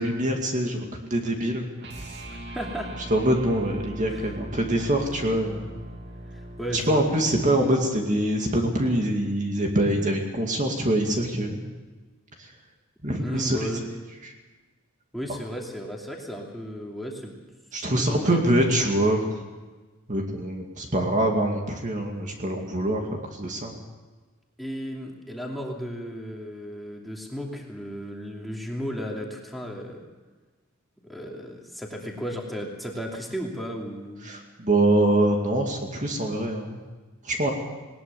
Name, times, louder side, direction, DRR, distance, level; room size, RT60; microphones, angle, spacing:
voice 1, 0.0-1.7 3.1-5.7 6.7-11.6 13.0-13.6 14.2-14.3 17.7-19.3 20.1-23.8 34.2-36.8 37.2-37.5, right 1 dB, 35° right, 2 dB, 2.4 m, -24 dB
sound 1, 1.8-8.2, right 1 dB, 50° right, 2.6 m, -40 dB
voice 2, 2.3-2.9 4.1-4.3 6.3-7.0 13.2-13.9 15.1-17.3 18.0-18.4 24.6-30.0 31.0-34.3, equal, ahead, -1 dB, 2.8 m, -34 dB
20.0 x 19.5 x 7.1 m, 1.3 s
head